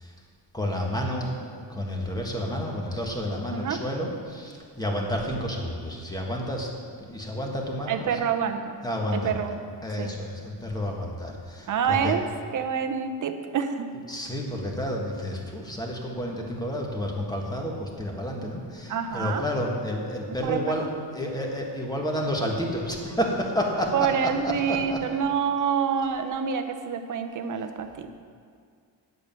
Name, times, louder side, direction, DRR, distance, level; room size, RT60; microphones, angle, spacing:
voice 1, 0.5-6.7 7.1-8.2 8.8-9.4 9.8-12.2 14.1-25.0, equal, 10° left, 0 dB, 1.6 m, -30 dB
voice 2, 7.9-8.8 9.1-9.6 10.0-10.1 11.7-12.2 12.5-13.9 18.9-19.4 20.4-20.9 23.9-28.1, right 7 dB, 45° right, 7 dB, 0.9 m, -27 dB
9.3 x 8.2 x 6.8 m, 2.1 s
cardioid pair, 145°, 43 cm